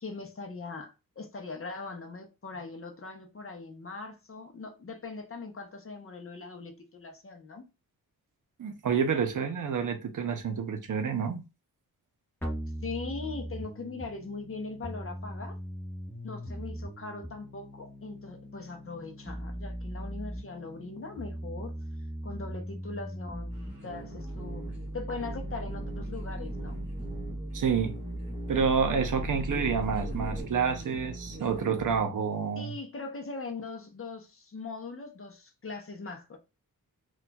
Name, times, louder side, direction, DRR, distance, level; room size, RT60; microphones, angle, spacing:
voice 1, 0.0-7.7 12.8-15.6 16.2-21.7 22.2-24.6 24.9-26.8 32.5-36.4, left 3 dB, 35° left, 0.6 m, -40 dB
voice 2, 8.6-11.5 27.5-28.0 28.5-32.7, right 6 dB, 60° right, 0.6 m, -28 dB
sound 1, 12.4-30.4, equal, 5° left, 0.9 m, -38 dB
sound 2, 23.5-32.0, right 3 dB, 30° right, 1.6 m, -43 dB
4.2 x 2.3 x 2.2 m
wide cardioid pair, 140°, 36 cm